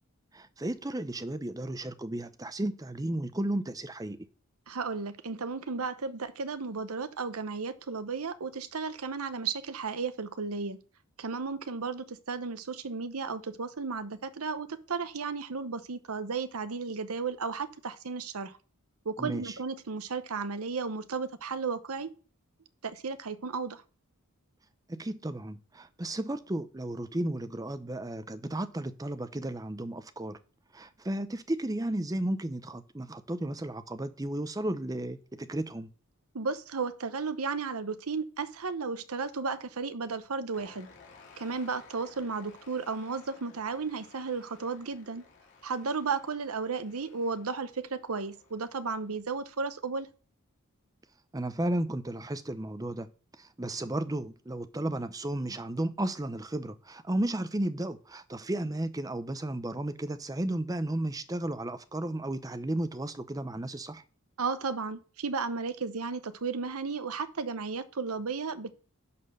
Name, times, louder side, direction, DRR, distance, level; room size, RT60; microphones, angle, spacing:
voice 1, 0.3-4.3 19.2-19.6 24.9-30.4 30.7-35.9 51.3-53.1 53.4-64.0, right 1 dB, 15° right, 0.6 m, -34 dB
voice 2, 4.7-10.8 11.2-18.5 19.0-22.1 22.8-23.8 36.3-40.9 41.4-45.2 45.6-50.1 64.4-68.7, right 4 dB, 80° right, 0.9 m, -34 dB
sound 1, 40.5-49.2, left 4 dB, 50° left, 2.4 m, -57 dB
11.0 x 4.3 x 6.5 m
head